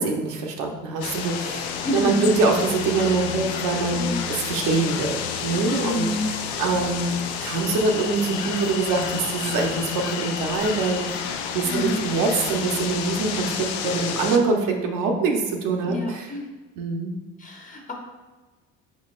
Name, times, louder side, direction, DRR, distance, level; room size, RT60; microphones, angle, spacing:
voice 1, 0.0-6.0 6.6-7.1 7.4-16.3 16.8-17.2, right 3 dB, 75° right, 2 dB, 0.8 m, -24 dB
sound 1, 1.0-14.4, left 7 dB, 90° left, 0.5 m, -30 dB
voice 2, 1.8-2.2 3.9-4.2 5.8-6.3 11.7-12.1 15.9-16.5 17.4-17.9, left 1 dB, 25° left, 0 dB, 0.9 m, -28 dB
4.4 x 4.0 x 2.4 m, 1.2 s
supercardioid pair, 100°, 32 cm